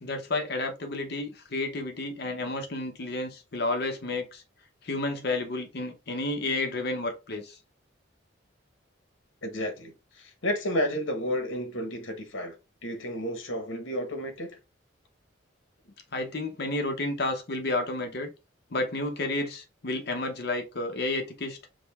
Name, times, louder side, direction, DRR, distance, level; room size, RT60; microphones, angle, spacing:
voice 1, 0.0-4.4 4.8-7.6 16.1-18.3 18.7-21.6, left 2 dB, 50° left, 0.7 m, -31 dB
voice 2, 9.4-12.5 12.8-14.6, equal, 75° left, 1.0 m, -31 dB
5.0 x 2.1 x 3.4 m
head